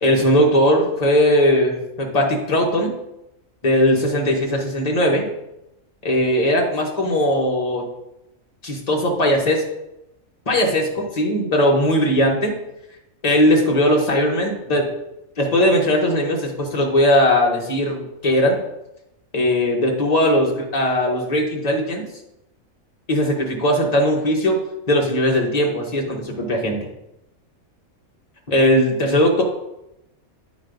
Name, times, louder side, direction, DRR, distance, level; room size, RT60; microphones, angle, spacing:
voice 1, 0.0-2.9 3.6-5.3 6.0-7.9 8.6-9.6 10.5-12.5 13.2-14.9 15.4-18.6 19.3-22.1 23.1-24.6 24.9-26.9 28.5-29.4, equal, 30° left, 0 dB, 1.2 m, -19 dB
9.3 x 3.1 x 5.1 m, 0.88 s
omnidirectional pair, 1.4 m